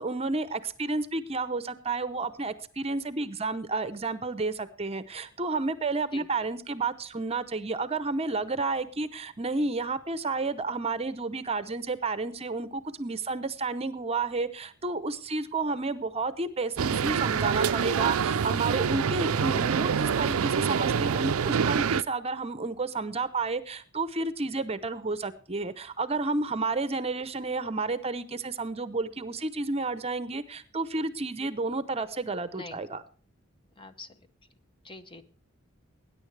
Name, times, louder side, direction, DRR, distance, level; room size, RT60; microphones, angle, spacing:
voice 1, 0.0-33.0, right 3 dB, 30° right, 13 dB, 0.7 m, -31 dB
sound 1, 16.8-22.0, right 6 dB, 85° right, 0.5 m, -26 dB
voice 2, 20.0-20.3 32.5-32.8 33.8-34.2 34.8-35.2, left 2 dB, 25° left, 10 dB, 0.9 m, -44 dB
20.5 x 10.0 x 3.3 m, 0.40 s
head